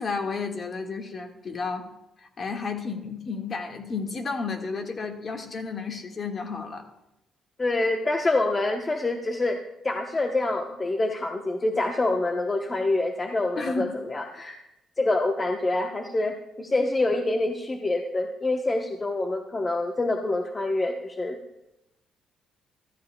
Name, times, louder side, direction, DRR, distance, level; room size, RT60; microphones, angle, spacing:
voice 1, 0.0-1.9 2.2-6.8 13.5-13.9, left 4 dB, 45° left, 4 dB, 1.6 m, -32 dB
voice 2, 7.6-9.6 9.8-14.6 15.0-21.4, left 2 dB, 25° left, 3 dB, 0.9 m, -26 dB
14.0 x 14.0 x 2.2 m, 0.90 s
cardioid pair, 90°, 0 cm